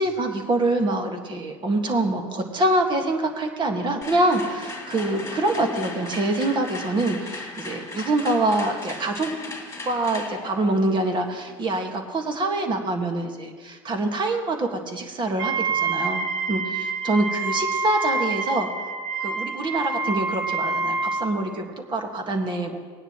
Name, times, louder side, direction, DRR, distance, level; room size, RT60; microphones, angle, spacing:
voice 1, 0.0-9.3 9.9-18.7 19.2-22.8, right 2 dB, 30° right, 3 dB, 1.8 m, -25 dB
sound 1, 4.0-12.0, left 2 dB, 15° left, 2.3 m, -38 dB
Wind instrument woodwind instrument, 15.4-21.3, right 4 dB, 75° right, 2.3 m, -27 dB
19.0 x 9.7 x 3.1 m, 1.5 s
supercardioid pair, 105°, 16 cm